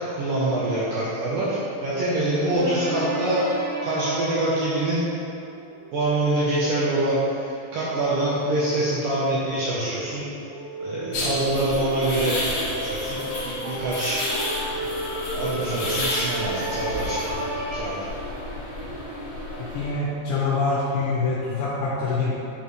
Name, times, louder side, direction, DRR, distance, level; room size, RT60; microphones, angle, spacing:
voice 1, 0.0-3.4 3.8-5.0 5.9-10.2 10.8-14.2 14.9-17.3 17.7-18.0, right 1 dB, 75° right, -8 dB, 2.0 m, -25 dB
sound 1, 2.5-6.0 7.7-7.8 8.4-17.8, right 1 dB, 60° right, 1.9 m, -33 dB
sound 2, 11.1-19.9, left 1 dB, 90° left, 1.2 m, -31 dB
voice 2, 19.7-22.3, left 3 dB, 75° left, -8 dB, 2.3 m, -25 dB
8.3 x 4.4 x 3.1 m, 2.8 s
omnidirectional pair, 4.9 m